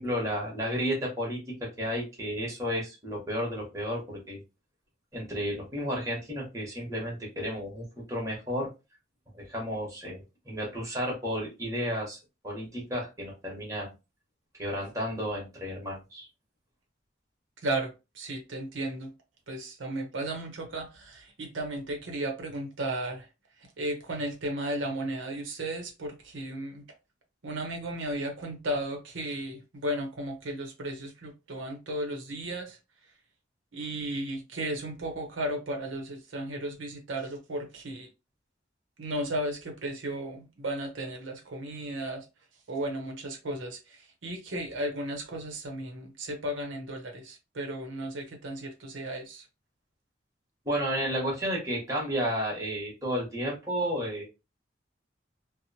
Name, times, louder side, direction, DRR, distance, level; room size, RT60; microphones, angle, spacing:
voice 1, 0.0-4.4 5.1-8.7 9.3-12.2 12.4-13.9 14.6-16.3 50.6-54.3, equal, 15° right, 1.0 m, -32 dB
voice 2, 17.6-19.1 19.5-23.3 23.8-26.8 27.4-32.8 33.7-38.1 39.0-42.3 42.7-49.5, right 1 dB, 90° right, 0.7 m, -34 dB
2.8 x 2.0 x 2.7 m
head